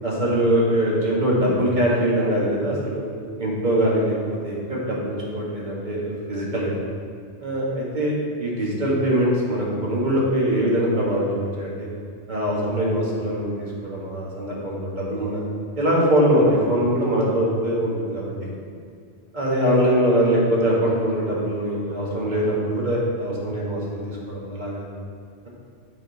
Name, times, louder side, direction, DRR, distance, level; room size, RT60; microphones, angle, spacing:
voice 1, 0.0-3.0 3.4-4.2 4.4-6.7 7.4-11.3 11.6-11.9 12.3-15.4 15.8-18.5 19.3-24.8, equal, 40° right, -5 dB, 1.7 m, -22 dB
9.6 x 4.1 x 4.0 m, 2.2 s
omnidirectional pair, 1.2 m